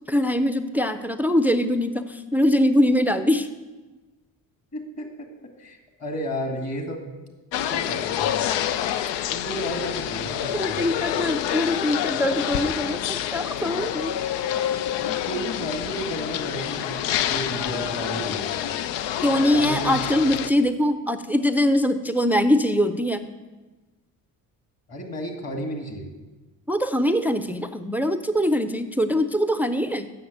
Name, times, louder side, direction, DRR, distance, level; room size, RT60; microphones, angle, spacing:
voice 1, 0.1-3.5 10.5-14.1 19.2-23.3 26.7-30.1, equal, 5° right, 10 dB, 0.5 m, -22 dB
voice 2, 4.7-5.3 5.6-7.1 7.7-8.4 9.3-10.8 15.0-17.0 17.3-18.5 19.3-20.0 24.9-26.1, equal, 35° left, 5 dB, 2.2 m, -32 dB
sound 1, 7.5-20.5, left 11 dB, 70° left, 0.6 m, -27 dB
7.8 x 6.4 x 7.9 m, 1.2 s
supercardioid pair, 60°, 43 cm